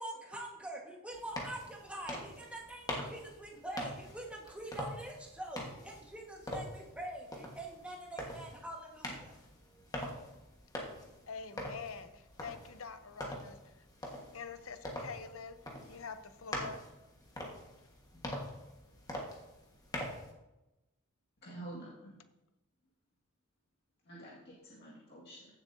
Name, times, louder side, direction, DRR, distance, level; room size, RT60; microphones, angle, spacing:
voice 1, 0.0-9.4 9.7-9.8, right 1 dB, 5° right, -1 dB, 1.5 m, -45 dB
sound 1, 1.1-20.3, left 1 dB, 20° left, 1.4 m, -44 dB
voice 2, 11.3-13.6 14.3-15.6 15.9-16.8, left 5 dB, 70° left, 10 dB, 0.7 m, -45 dB
voice 3, 21.4-22.1 24.1-25.5, right 1 dB, 55° left, -6 dB, 1.9 m, -48 dB
15.5 x 7.2 x 2.7 m, 1.0 s
head